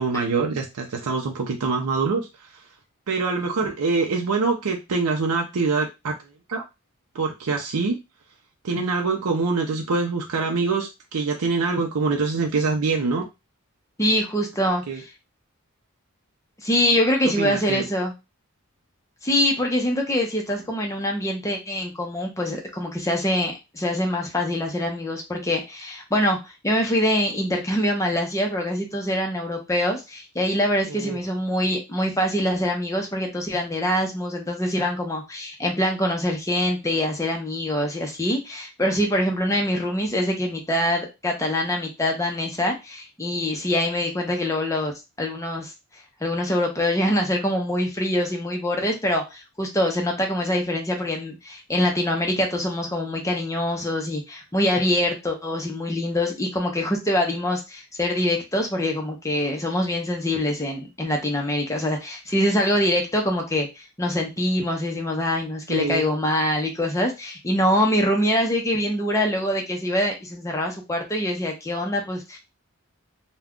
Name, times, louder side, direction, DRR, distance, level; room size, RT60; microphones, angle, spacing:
voice 1, 0.0-2.5 3.1-6.1 6.5-6.6 7.1-8.0 8.6-13.2 14.9-15.0 17.4-17.8 30.9-31.2 65.7-66.0, right 4 dB, 85° right, 2 dB, 0.5 m, -24 dB
voice 2, 14.0-15.0 16.6-18.1 19.2-44.9 45.2-45.7 46.2-72.4, left 1 dB, 15° left, 1 dB, 0.6 m, -24 dB
2.4 x 2.2 x 3.5 m, 0.24 s
head